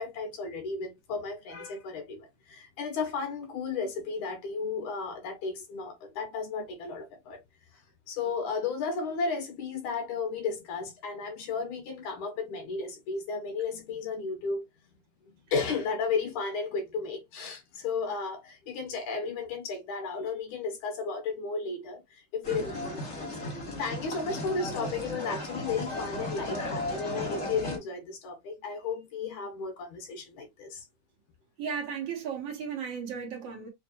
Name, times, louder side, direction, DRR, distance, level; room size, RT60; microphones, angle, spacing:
voice 1, 0.0-7.4 8.1-14.7 15.5-30.8, left 4 dB, 85° left, 2.9 m, -34 dB
sound 1, 22.4-27.8, left 1 dB, 30° left, 1.3 m, -35 dB
voice 2, 31.6-33.7, right 6 dB, 60° right, 2.1 m, -35 dB
6.2 x 2.5 x 2.9 m
omnidirectional pair, 3.4 m